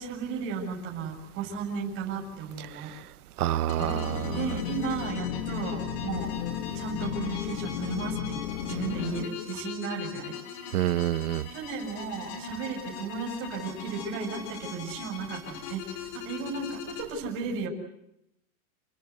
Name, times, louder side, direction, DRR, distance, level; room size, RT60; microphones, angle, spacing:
voice 1, 0.0-2.9 4.3-6.3 6.7-10.4 11.5-15.8 16.1-17.7, right 5 dB, 30° right, 0 dB, 7.3 m, -35 dB
voice 2, 3.4-4.3 10.7-11.5, right 13 dB, 85° right, 16 dB, 1.4 m, -27 dB
sound 1, 3.7-17.0, left 7 dB, 40° left, 6.0 m, -41 dB
sound 2, 3.8-9.3, left 11 dB, 80° left, 3.0 m, -34 dB
29.5 x 24.5 x 8.2 m, 0.81 s
supercardioid pair, 170°, 43 cm